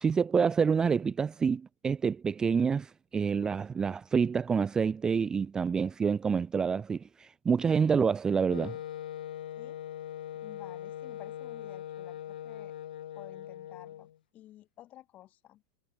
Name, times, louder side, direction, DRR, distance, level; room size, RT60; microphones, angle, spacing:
voice 1, 0.0-8.8, right 6 dB, 15° right, 0.4 m, -27 dB
Wind instrument woodwind instrument, 8.5-14.2, left 11 dB, 90° left, 0.6 m, -41 dB
voice 2, 10.4-12.7 13.1-15.6, left 13 dB, 35° left, 2.5 m, -52 dB
supercardioid pair, 140°, 5 cm